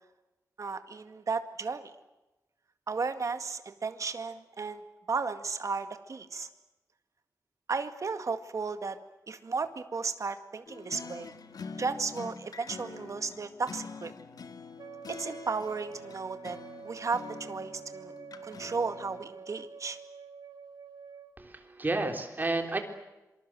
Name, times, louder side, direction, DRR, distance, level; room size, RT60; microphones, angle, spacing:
voice 1, 0.6-1.9 2.9-4.8 5.1-6.5 7.7-9.0 9.3-11.3 11.8-14.1 15.1-16.6 16.8-18.1 18.4-20.0, right 4 dB, 55° right, 9 dB, 2.0 m, -34 dB
sound 1, 10.7-19.2, left 5 dB, 75° left, 1.9 m, -45 dB
Wind instrument woodwind instrument, 14.8-21.3, right 6 dB, 90° right, 2.1 m, -47 dB
voice 2, 21.4-22.8, right 2 dB, 30° right, 5 dB, 3.8 m, -31 dB
27.0 x 25.0 x 7.8 m, 1.0 s
wide cardioid pair, 140°, 7 cm